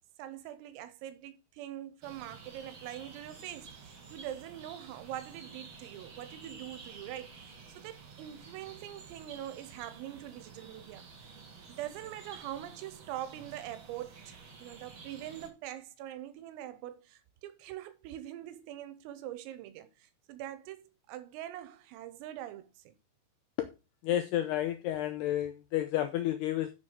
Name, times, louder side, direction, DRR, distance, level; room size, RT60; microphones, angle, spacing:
voice 1, 0.2-11.4 11.7-23.0, right 12 dB, 90° right, 3.7 m, -43 dB
sound 1, 2.0-15.5, right 5 dB, 70° right, 1.1 m, -51 dB
voice 2, 24.0-26.7, left 12 dB, 90° left, 2.3 m, -31 dB
7.5 x 7.3 x 6.4 m
omnidirectional pair, 5.9 m